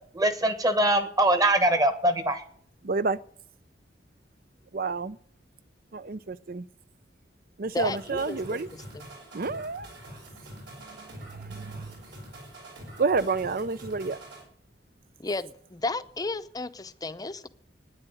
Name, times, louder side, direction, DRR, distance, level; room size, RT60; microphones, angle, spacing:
voice 1, 0.1-2.4, right 1 dB, 20° right, 1.3 m, -23 dB
voice 2, 2.8-3.2 4.7-5.2 5.9-6.7 7.6-8.7 9.3-9.9 11.0-12.0 13.0-14.2, right 4 dB, 55° right, 0.6 m, -29 dB
voice 3, 7.7-8.6 15.2-17.5, left 3 dB, 20° left, 0.7 m, -33 dB
sound 1, 7.8-14.4, right 1 dB, 70° right, 6.5 m, -45 dB
13.0 x 10.0 x 9.1 m
head